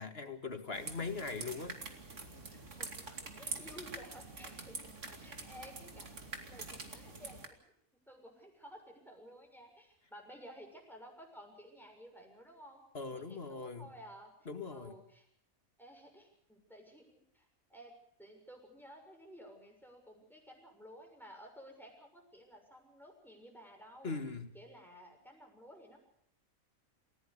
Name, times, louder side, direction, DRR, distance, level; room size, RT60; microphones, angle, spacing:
voice 1, 0.0-1.8 12.9-14.0 14.5-15.0 24.0-24.5, left 4 dB, 45° left, 8 dB, 2.2 m, -41 dB
sound 1, 0.7-7.5, right 3 dB, 60° right, 3.0 m, -46 dB
voice 2, 2.5-4.8 5.2-6.1 6.4-7.7 8.1-15.3 15.8-24.2 24.5-26.1, equal, ahead, 2 dB, 6.8 m, -55 dB
28.5 x 16.5 x 6.7 m, 0.67 s
omnidirectional pair, 1.5 m